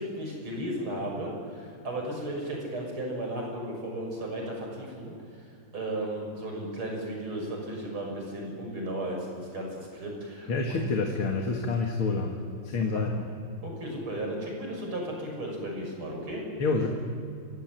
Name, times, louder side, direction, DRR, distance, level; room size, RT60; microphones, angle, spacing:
voice 1, 0.0-5.1 5.7-10.8 13.6-16.4, right 1 dB, 85° right, 0 dB, 7.3 m, -35 dB
voice 2, 10.5-12.3 12.6-13.1 16.6-16.9, left 3 dB, 90° left, 1 dB, 2.8 m, -27 dB
30.0 x 17.0 x 9.3 m, 2.4 s
omnidirectional pair, 2.3 m